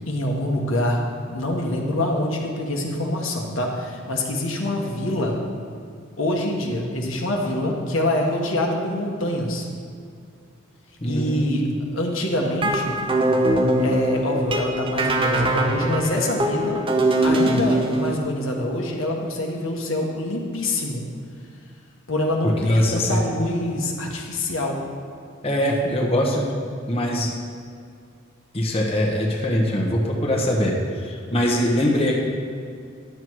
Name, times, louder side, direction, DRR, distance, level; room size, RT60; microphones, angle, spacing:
voice 1, 0.1-5.4 6.2-9.7 11.0-11.7 11.9-13.0 13.8-16.8 17.2-21.0 22.1-24.8, left 1 dB, 80° left, 0 dB, 1.4 m, -25 dB
voice 2, 11.0-11.7 22.6-23.2 25.4-26.5 26.9-27.3 28.5-32.2, equal, 30° left, -2 dB, 1.2 m, -22 dB
sound 1, 12.4-18.2, right 1 dB, 25° right, 0.7 m, -22 dB
10.5 x 7.6 x 4.7 m, 2.4 s
head